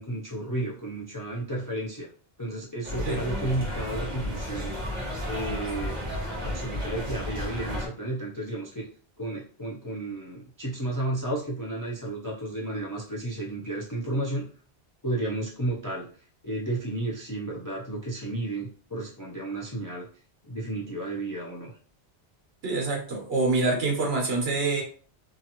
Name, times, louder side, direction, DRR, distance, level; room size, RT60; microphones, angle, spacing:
voice 1, 0.0-2.1 2.4-4.7 5.2-5.9 6.4-8.9 9.2-14.5 15.0-16.1 16.4-20.1 20.5-21.7, right 1 dB, 30° left, -3 dB, 0.3 m, -32 dB
sound 1, 2.8-7.9, equal, 30° right, 1.0 m, -33 dB
voice 2, 22.6-24.8, right 3 dB, 70° right, 0 dB, 1.2 m, -26 dB
2.8 x 2.5 x 2.8 m, 0.42 s
omnidirectional pair, 1.1 m